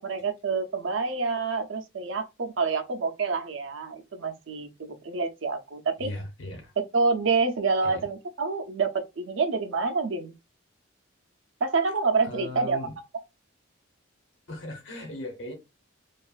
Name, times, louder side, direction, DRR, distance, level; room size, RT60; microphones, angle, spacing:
voice 1, 0.0-6.1 6.9-10.3 11.6-12.8, right 4 dB, 70° right, 0.5 m, -27 dB
voice 2, 6.0-6.7 7.8-8.0 12.2-12.9 14.5-15.5, left 1 dB, 70° left, 1.0 m, -38 dB
3.0 x 2.3 x 2.3 m
head